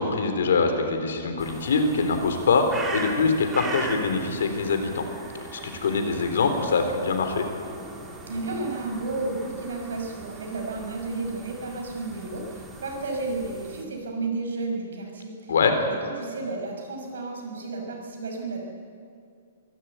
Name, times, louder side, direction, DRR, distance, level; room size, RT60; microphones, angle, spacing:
voice 1, 0.0-5.0 5.5-7.4 15.5-15.7, left 4 dB, 80° left, 6 dB, 3.8 m, -24 dB
sound 1, 1.4-13.8, right 2 dB, 10° right, 2.0 m, -40 dB
voice 2, 8.3-18.6, right 3 dB, 90° right, 2 dB, 6.1 m, -32 dB
23.5 x 13.0 x 9.2 m, 2.3 s
hypercardioid pair, 165°, 0 cm